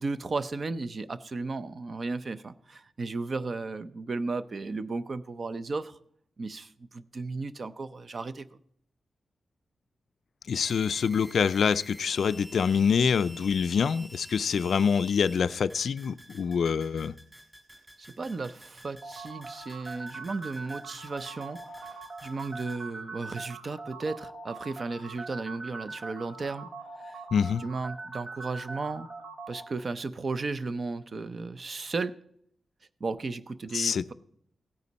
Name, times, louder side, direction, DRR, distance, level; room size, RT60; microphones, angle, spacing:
voice 1, 0.0-6.0 6.4-8.5 18.0-26.7 27.0-27.2 27.6-29.1 29.5-32.1 33.0-34.1, right 3 dB, 40° right, 0.6 m, -35 dB
voice 2, 10.5-17.1 27.3-27.6 33.7-34.0, left 6 dB, 70° left, 0.4 m, -25 dB
sound 1, 10.6-22.8, equal, 10° right, 2.1 m, -50 dB
sound 2, 19.0-29.6, right 3 dB, 65° right, 2.3 m, -42 dB
16.0 x 9.6 x 4.1 m
wide cardioid pair, 160°, 0 cm